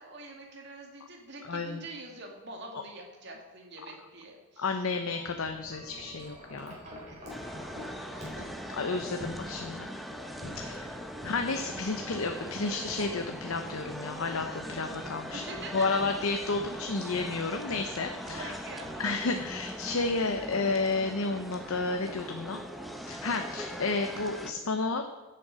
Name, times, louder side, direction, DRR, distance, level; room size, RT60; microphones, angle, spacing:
voice 1, 0.0-4.7 6.8-8.8 10.5-10.7 11.7-12.0 15.3-16.0 18.0-19.0, right 2 dB, 55° right, 0 dB, 2.4 m, -46 dB
voice 2, 1.4-1.8 4.6-6.8 8.7-9.9 10.5-10.9 11.2-15.4 15.7-18.5 19.0-22.6 23.1-25.0, left 3 dB, 90° left, 5 dB, 0.8 m, -31 dB
Wind chime, 5.1-21.3, left 1 dB, 35° right, 4.0 m, -48 dB
sound 1, 7.3-24.5, equal, ahead, 0.8 m, -41 dB
16.0 x 6.9 x 4.9 m, 1.2 s
head